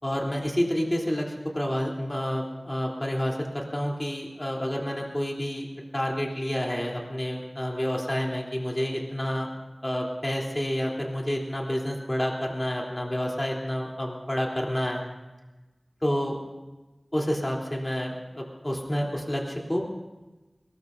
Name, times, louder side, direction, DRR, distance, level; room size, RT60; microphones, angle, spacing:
voice 1, 0.0-5.7 5.9-9.5 9.8-15.0 16.0-16.4 17.1-19.8, equal, 25° left, -2 dB, 3.4 m, -29 dB
22.5 x 20.5 x 2.7 m, 1.1 s
wide cardioid pair, 45°, 0 cm